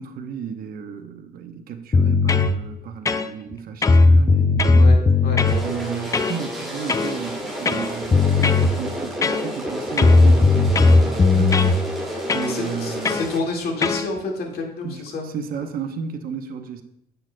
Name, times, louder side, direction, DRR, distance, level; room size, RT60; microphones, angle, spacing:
voice 1, 0.0-5.0 5.6-11.7 12.3-13.2 14.8-16.8, right 7 dB, 60° right, 7 dB, 0.8 m, -33 dB
sound 1, 1.9-2.5 3.1-3.5 3.8-5.6 6.1-6.4 6.9-7.2 7.7-8.7 9.2-9.7 10.0-11.8 12.3-12.5 13.1-13.3 13.8-14.1, left 3 dB, 20° left, 0.4 m, -16 dB
sound 2, 5.4-13.4, equal, ahead, 2.5 m, -30 dB
voice 2, 12.5-15.3 15.6-15.7, left 3 dB, 65° left, 1 dB, 1.9 m, -28 dB
10.0 x 8.0 x 2.2 m, 0.82 s
cardioid pair, 110°, 17 cm